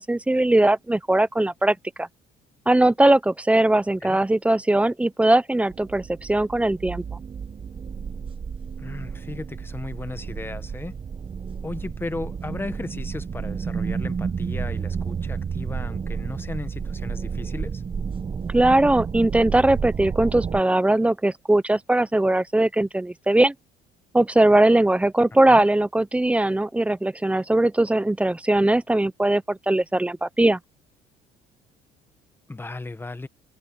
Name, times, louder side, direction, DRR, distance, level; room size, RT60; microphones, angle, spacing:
voice 1, 0.0-2.1 2.7-7.0 18.5-23.5 24.1-30.6, right 1 dB, 5° right, 0.6 m, -20 dB
sound 1, 5.7-20.6, right 6 dB, 30° right, 1.1 m, -31 dB
voice 2, 8.8-11.0 11.6-17.8 25.5-25.6 32.5-33.3, left 2 dB, 15° left, 1.4 m, -35 dB
cardioid pair, 110°, 17 cm